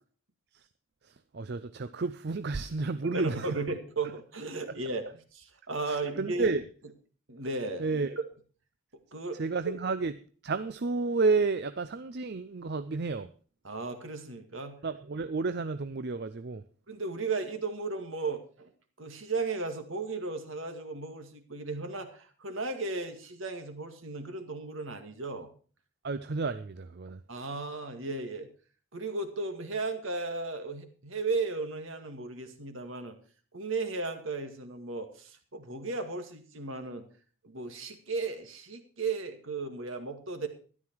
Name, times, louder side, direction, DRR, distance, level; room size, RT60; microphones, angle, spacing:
voice 1, 1.3-3.6 4.7-4.8 5.9-6.6 7.8-8.2 9.4-10.1 10.4-13.3 14.8-16.6 26.0-27.2, right 3 dB, 50° right, 0.5 m, -31 dB
voice 2, 3.0-6.5 7.3-7.9 9.1-9.7 13.6-14.8 16.9-18.7 19.0-25.5 27.3-28.5 28.9-33.2 33.5-37.1 37.4-40.5, right 3 dB, 65° right, 2.0 m, -35 dB
13.0 x 11.5 x 4.6 m
head